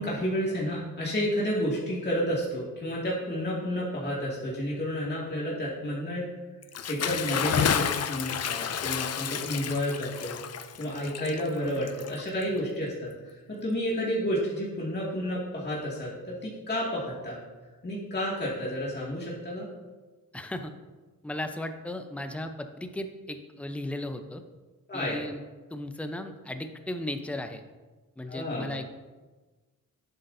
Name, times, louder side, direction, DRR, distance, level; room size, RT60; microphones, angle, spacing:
voice 1, 0.0-6.3 6.9-10.3 10.8-17.4 17.8-19.7 24.9-25.2 28.3-28.7, equal, 30° left, -6 dB, 2.4 m, -31 dB
Bathtub (filling or washing) / Splash splatter, 6.6-12.6, left 8 dB, 45° left, 0.6 m, -31 dB
voice 2, 20.3-20.7 21.2-24.4 24.9-25.4 25.7-27.6 28.2-28.9, left 1 dB, 5° left, 7 dB, 0.8 m, -36 dB
10.5 x 7.8 x 2.8 m, 1.3 s
cardioid pair, 70°, 36 cm